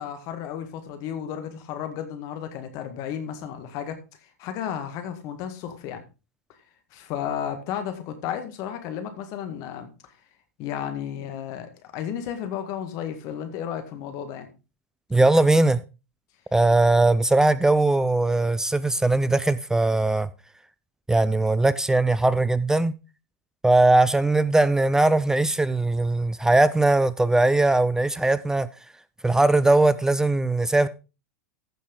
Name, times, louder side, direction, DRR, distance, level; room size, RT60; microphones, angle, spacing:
voice 1, 0.0-6.0 6.9-9.9 10.6-14.5, left 9 dB, 45° left, 1.8 m, -33 dB
voice 2, 15.1-15.8 16.5-20.3 21.1-22.9 23.6-28.7 29.2-30.9, right 2 dB, 5° right, 0.4 m, -20 dB
14.5 x 6.1 x 3.7 m
figure-of-eight pair, 95°, 8 cm